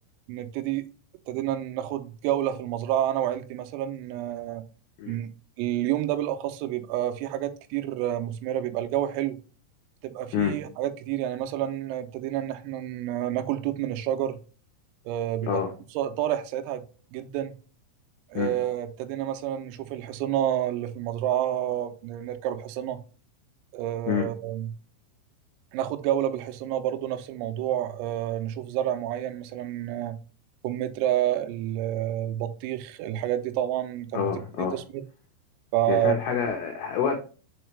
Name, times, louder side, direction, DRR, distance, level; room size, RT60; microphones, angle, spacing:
voice 1, 0.3-0.9 1.3-4.6 5.1-5.3 5.6-9.4 10.0-14.4 15.1-15.6 16.0-16.8 17.1-17.5 18.3-23.0 23.7-24.7 25.7-30.2 30.6-34.3 34.6-35.0 35.7-36.1, right 12 dB, 90° right, 3.4 m, -29 dB
voice 2, 34.1-34.8 35.9-37.2, left 8 dB, 90° left, 2.4 m, -27 dB
7.0 x 4.3 x 3.2 m
omnidirectional pair, 5.9 m